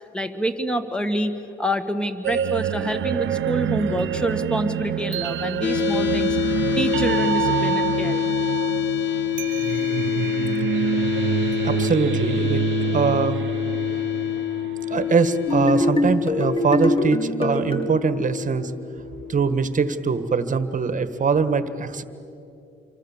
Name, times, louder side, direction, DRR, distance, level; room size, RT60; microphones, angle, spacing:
voice 1, 0.1-1.3 1.6-8.3, right 1 dB, 5° left, 8 dB, 1.9 m, -27 dB
sound 1, 2.2-15.2, right 10 dB, 70° right, 0.8 m, -26 dB
sound 2, 5.6-19.6, left 13 dB, 65° left, 0.7 m, -27 dB
voice 2, 11.6-12.6 12.9-13.4 14.9-18.7 19.3-22.0, right 5 dB, 40° right, 12 dB, 1.5 m, -22 dB
sound 3, 15.5-17.9, left 1 dB, 25° left, 2.1 m, -23 dB
27.5 x 24.5 x 7.4 m, 2.7 s
cardioid pair, 90°, 20 cm